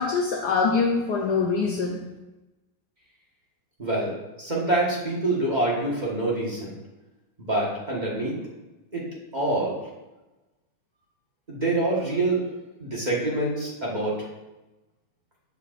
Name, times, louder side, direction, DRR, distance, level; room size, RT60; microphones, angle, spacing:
voice 1, 0.0-2.1, left 4 dB, 75° left, 2 dB, 0.9 m, -24 dB
voice 2, 3.8-6.7 7.4-8.4 8.9-9.1 9.3-9.8 11.5-12.5 12.8-14.3, right 2 dB, 25° right, -4 dB, 1.1 m, -26 dB
7.0 x 7.0 x 2.4 m, 1.0 s
omnidirectional pair, 2.3 m